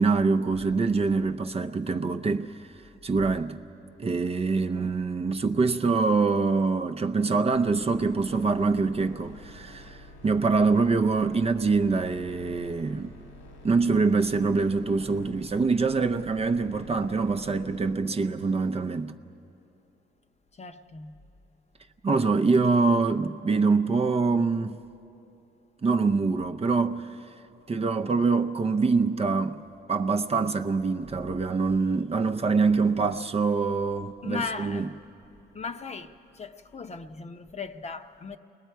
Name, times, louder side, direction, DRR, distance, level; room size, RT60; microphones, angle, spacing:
voice 1, 0.0-2.6 3.0-3.6 4.0-13.1 13.6-19.1 22.0-24.8 25.8-27.2 27.7-29.6 29.9-34.9, right 4 dB, 30° right, 0.6 m, -25 dB
sound 1, 7.5-17.9, left 1 dB, 85° left, 2.1 m, -49 dB
voice 2, 20.6-21.1 34.2-34.9 35.5-36.1 36.4-38.4, left 5 dB, 35° left, 0.8 m, -37 dB
29.0 x 21.0 x 4.6 m
cardioid pair, 90°, 20 cm